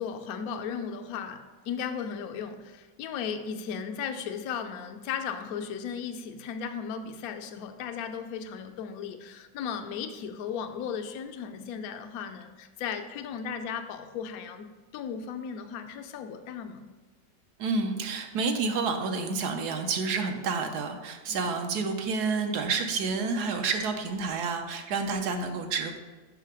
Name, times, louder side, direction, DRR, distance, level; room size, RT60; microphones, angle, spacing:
voice 1, 0.0-16.9 21.3-21.5 25.3-25.6, left 7 dB, 70° left, 1.0 m, -36 dB
voice 2, 17.6-26.0, right 4 dB, 70° right, 1.2 m, -29 dB
5.9 x 5.6 x 4.8 m
omnidirectional pair, 1.9 m